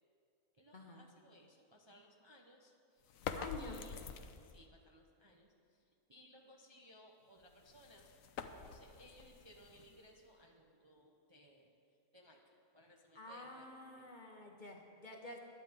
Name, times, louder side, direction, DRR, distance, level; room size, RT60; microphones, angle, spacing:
voice 1, 0.6-2.7 3.6-4.0 4.5-5.5 6.1-8.0 8.7-11.7 12.1-12.4 12.7-14.1, equal, 25° right, 0 dB, 0.8 m, -62 dB
sound 1, 3.0-4.7 7.4-10.3, left 6 dB, 75° left, 1.1 m, -47 dB
voice 2, 3.4-3.9 13.1-15.4, left 2 dB, 35° left, 1 dB, 1.2 m, -49 dB
21.0 x 11.0 x 3.7 m, 2.5 s
omnidirectional pair, 1.5 m